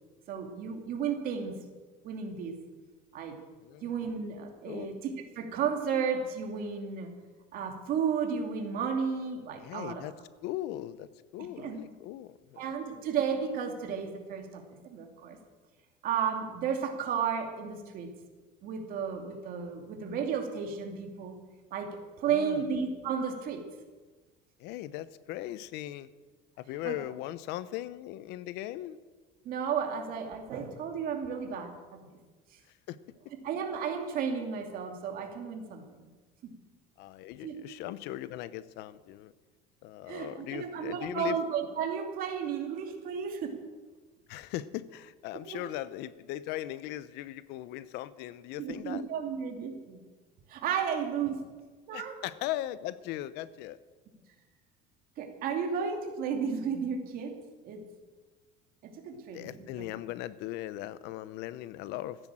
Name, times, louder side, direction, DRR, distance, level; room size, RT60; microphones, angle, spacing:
voice 1, 0.3-1.6 2.0-2.5 3.1-3.3 3.8-7.1 7.5-10.0 11.6-11.8 12.6-15.4 16.0-18.1 18.6-21.4 21.7-21.9 22.2-23.6 26.8-27.0 29.4-32.1 33.4-35.8 36.4-36.5 37.4-37.5 40.1-43.5 45.3-45.7 48.6-50.0 50.5-51.4 51.9-52.2 55.2-57.3 57.6-57.8 58.8-59.9, right 7 dB, 55° right, 3 dB, 2.6 m, -33 dB
voice 2, 3.6-3.9 4.6-4.9 9.6-10.1 10.4-11.1 11.3-12.6 22.2-22.6 24.6-26.1 26.6-29.0 32.9-33.0 37.0-39.3 39.8-41.4 44.3-49.1 51.9-53.8 59.1-62.3, left 14 dB, 70° left, 16 dB, 0.7 m, -39 dB
14.5 x 10.0 x 7.6 m, 1.3 s
cardioid pair, 135°, 18 cm